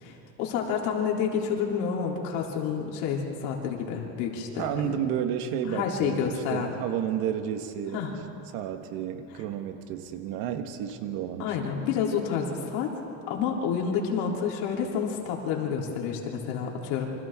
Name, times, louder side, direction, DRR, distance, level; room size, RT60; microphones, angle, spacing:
voice 1, 0.0-5.0 5.7-6.7 7.9-8.1 11.4-12.9 13.3-17.1, left 7 dB, 90° left, -1 dB, 3.6 m, -29 dB
voice 2, 4.6-8.0 8.5-11.7, right 9 dB, 75° right, 7 dB, 1.6 m, -31 dB
28.5 x 25.0 x 3.8 m, 2.8 s
cardioid pair, 155°, 37 cm